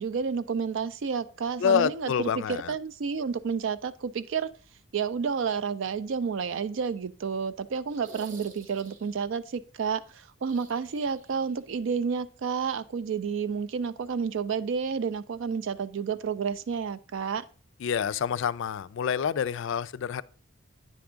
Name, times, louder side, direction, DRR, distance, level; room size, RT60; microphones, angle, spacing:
voice 1, 0.0-4.5 4.9-17.5, right 6 dB, 60° right, 0.4 m, -30 dB
voice 2, 1.6-2.7 17.8-20.2, left 7 dB, 60° left, 0.3 m, -27 dB
sound 1, 7.9-9.3 10.4-11.6 11.8-11.9 13.6-13.7, right 4 dB, 35° right, 0.7 m, -50 dB
9.3 x 3.5 x 4.9 m
head